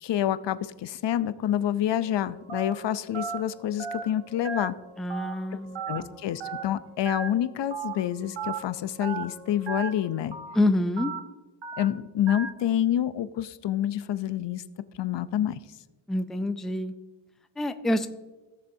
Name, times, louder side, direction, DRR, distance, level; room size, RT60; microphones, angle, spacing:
voice 1, 0.0-4.8 5.9-10.4 11.8-14.6 15.0-15.6, left 11 dB, 65° left, 14 dB, 0.6 m, -28 dB
sound 1, 1.9-10.3, left 2 dB, 30° right, 3.0 m, -52 dB
Telephone, 2.5-2.7 3.1-3.4 3.8-4.0 4.4-4.7 5.1-5.3 5.7-6.0 6.4-6.6 7.1-7.3 7.7-7.9 8.4-8.6 9.0-9.2 9.7-9.9 10.3-10.5 11.0-11.2 11.6-11.8 12.3-12.5, right 6 dB, 70° right, 1.2 m, -34 dB
voice 2, 5.0-6.1 10.5-11.1 16.1-16.9 17.6-18.1, left 1 dB, ahead, 10 dB, 0.3 m, -27 dB
17.0 x 6.8 x 2.7 m, 1.2 s
wide cardioid pair, 120°, 47 cm